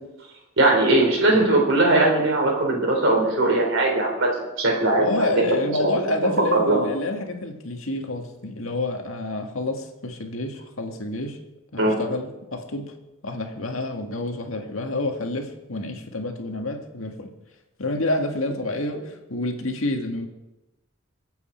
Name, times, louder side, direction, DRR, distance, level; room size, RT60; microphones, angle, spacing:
voice 1, 0.6-4.3 4.6-5.1 5.8-5.9 6.2-6.9 11.8-11.9, right 2 dB, 65° right, 0 dB, 4.5 m, -19 dB
voice 2, 5.0-11.4 11.7-12.9 13.2-17.3 17.8-20.3, left 2 dB, 80° left, 3 dB, 1.8 m, -28 dB
23.5 x 8.3 x 4.5 m, 1.0 s
head